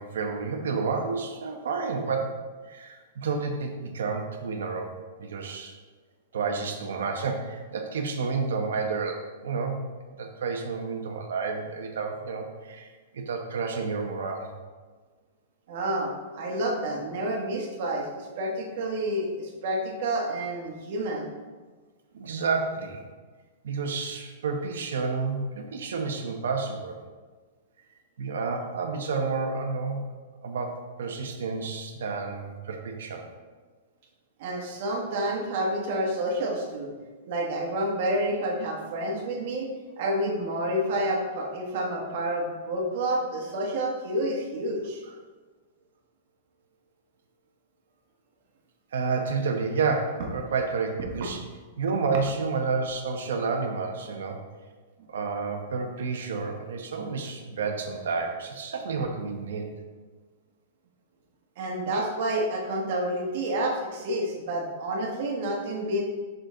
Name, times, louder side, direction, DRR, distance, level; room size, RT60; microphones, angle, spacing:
voice 1, 0.0-2.4 2.7-4.9 5.2-5.7 6.3-9.8 10.2-14.5 22.1-23.0 23.6-27.0 28.2-30.0 30.4-33.3 48.9-51.4 51.8-54.4 55.1-59.7, right 4 dB, 90° right, 3 dB, 1.0 m, -30 dB
voice 2, 15.7-16.1 16.3-21.3 34.4-36.9 37.3-39.7 40.0-45.0 59.0-59.1 61.6-66.0, right 1 dB, 45° right, -1 dB, 1.4 m, -29 dB
6.1 x 5.2 x 3.8 m, 1.4 s
supercardioid pair, 175°, 0 cm